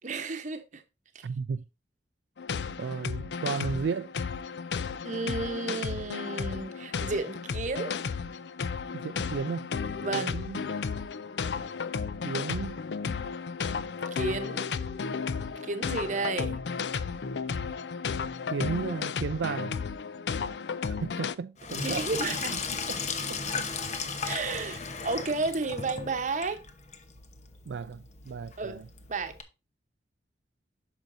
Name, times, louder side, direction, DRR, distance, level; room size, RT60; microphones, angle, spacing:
voice 1, 0.0-0.8 1.1-1.2 5.0-7.9 10.0-10.4 14.1-14.7 15.6-16.6 21.8-22.6 24.2-26.6 28.6-28.8 29.1-29.3, right 3 dB, 45° right, 0.9 m, -32 dB
voice 2, 1.2-1.6 2.8-4.1 8.9-9.7 10.1-10.7 12.2-12.8 18.5-19.8 20.9-22.1 22.5-23.0 23.3-23.7 27.7-28.9, right 5 dB, 90° right, 0.4 m, -34 dB
sound 1, 2.4-21.3, left 5 dB, 70° left, 0.4 m, -33 dB
Sink (filling or washing), 21.6-29.4, left 5 dB, 40° left, 0.9 m, -36 dB
8.9 x 6.4 x 2.6 m
head